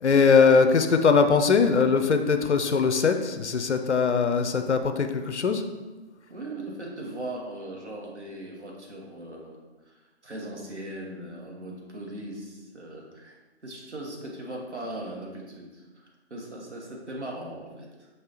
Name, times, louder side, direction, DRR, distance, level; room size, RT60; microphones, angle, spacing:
voice 1, 0.0-5.6, left 5 dB, 80° left, 7 dB, 0.5 m, -21 dB
voice 2, 6.3-18.1, right 1 dB, 80° right, -2 dB, 1.3 m, -39 dB
5.4 x 3.3 x 2.9 m, 1.2 s
figure-of-eight pair, 145°, 34 cm